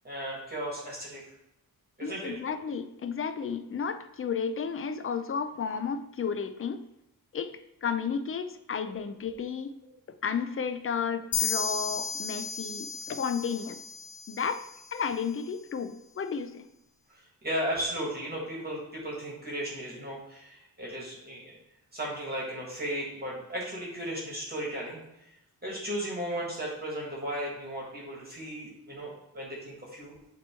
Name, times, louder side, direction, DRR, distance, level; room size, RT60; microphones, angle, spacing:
voice 1, 0.0-1.2 2.0-2.4 17.1-21.6 21.9-25.3 25.6-30.1, equal, 25° right, -3 dB, 1.6 m, -35 dB
voice 2, 2.0-6.8 7.3-9.7 10.2-13.8 14.3-16.7, left 6 dB, 40° left, 10 dB, 0.4 m, -33 dB
sound 1, 11.3-14.9, left 6 dB, 60° left, 0.8 m, -34 dB
7.7 x 3.0 x 4.4 m, 0.86 s
wide cardioid pair, 135°, 36 cm